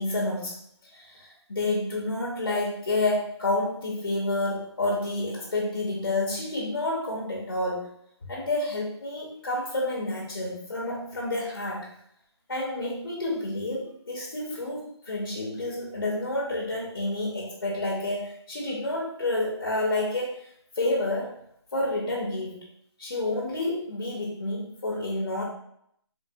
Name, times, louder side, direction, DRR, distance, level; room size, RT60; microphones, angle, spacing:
voice 1, 0.0-7.9 8.3-11.9 12.5-21.4 21.7-22.7 23.0-25.4, left 2 dB, 45° left, -3 dB, 0.6 m, -29 dB
3.1 x 2.1 x 2.6 m, 0.72 s
hypercardioid pair, 180°, 15 cm